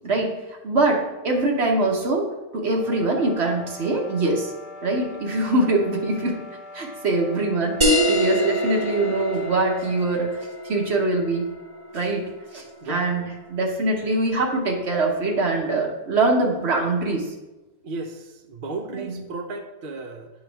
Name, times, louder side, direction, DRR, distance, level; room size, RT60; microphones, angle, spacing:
voice 1, 0.0-2.3 2.5-4.5 4.8-6.4 6.7-10.3 10.6-11.5 11.9-12.2 12.5-13.2 13.5-17.3 18.9-19.2, right 2 dB, 90° right, 0 dB, 1.5 m, -23 dB
sound 1, 2.6-10.1, left 2 dB, 50° left, 0.9 m, -42 dB
sound 2, 7.8-12.9, equal, 30° right, 1.1 m, -25 dB
voice 2, 12.8-13.1 17.8-20.3, right 3 dB, 60° right, 5 dB, 0.8 m, -34 dB
9.7 x 4.7 x 3.5 m, 1.1 s
omnidirectional pair, 1.1 m